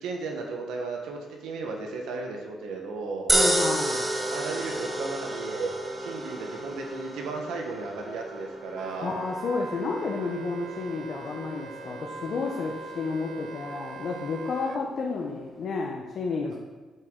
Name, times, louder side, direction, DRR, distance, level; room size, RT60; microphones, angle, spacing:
voice 1, 0.0-3.3 4.3-5.7 6.0-9.1, right 4 dB, 85° right, 2 dB, 1.1 m, -35 dB
voice 2, 3.3-4.1 8.8-16.5, left 4 dB, 60° left, 0 dB, 0.7 m, -31 dB
sound 1, 3.3-15.6, right 1 dB, 15° right, 0.7 m, -32 dB
Wind instrument woodwind instrument, 8.8-14.8, right 4 dB, 60° right, 0.4 m, -41 dB
7.4 x 4.9 x 3.8 m, 1.4 s
cardioid pair, 90°, 0 cm